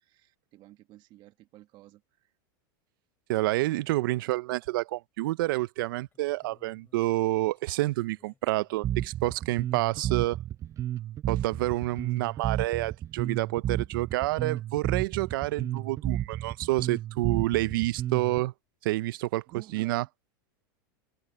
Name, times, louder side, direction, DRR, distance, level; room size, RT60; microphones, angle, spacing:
voice 1, 0.0-2.0 19.5-20.1, right 16 dB, 40° right, 1.7 m, -50 dB
sound 1, 3.3-3.4 3.8-4.9 5.3-9.6 12.2-12.3 12.5-12.6 13.6-13.7 14.3-14.4 18.0-18.1 18.3-18.7, left 6 dB, 20° left, 5.4 m, -67 dB
voice 2, 3.3-10.4 11.3-18.5 18.8-19.4 19.7-20.0, right 18 dB, 70° right, 0.6 m, -28 dB
Bass guitar, 8.8-18.4, right 12 dB, 25° right, 0.7 m, -32 dB
open air
supercardioid pair, 135°, 12 cm